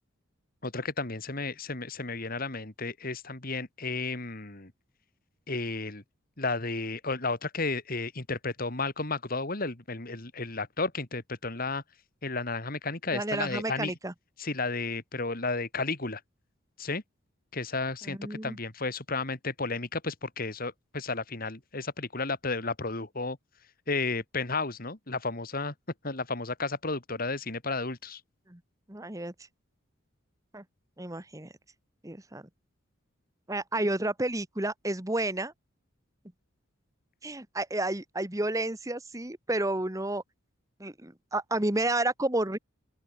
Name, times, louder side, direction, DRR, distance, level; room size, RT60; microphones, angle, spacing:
voice 1, 0.6-4.7 5.5-6.0 6.4-11.8 12.2-13.9 14.4-16.2 16.8-17.0 17.5-23.4 23.9-25.7 26.0-28.2, left 3 dB, 45° left, 2.4 m, -33 dB
voice 2, 13.1-14.1 18.0-18.6 28.5-28.6 28.9-29.3 30.5-30.6 31.0-31.5 32.0-32.4 33.5-35.5 37.2-40.2 40.8-42.6, right 2 dB, 15° right, 1.4 m, -31 dB
open air
head